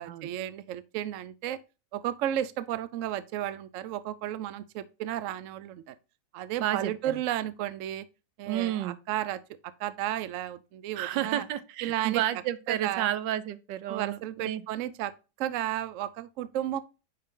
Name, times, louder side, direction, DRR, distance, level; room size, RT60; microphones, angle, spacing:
voice 1, 0.0-1.6 1.9-5.9 6.3-8.1 8.4-9.4 9.8-11.4 11.8-12.2 12.7-13.1 13.9-15.1 15.4-16.8, right 12 dB, 65° right, 0.8 m, -33 dB
voice 2, 6.6-6.9 8.5-9.0 10.9-14.6, right 12 dB, 85° right, 1.3 m, -31 dB
9.6 x 3.9 x 3.7 m
omnidirectional pair, 1.9 m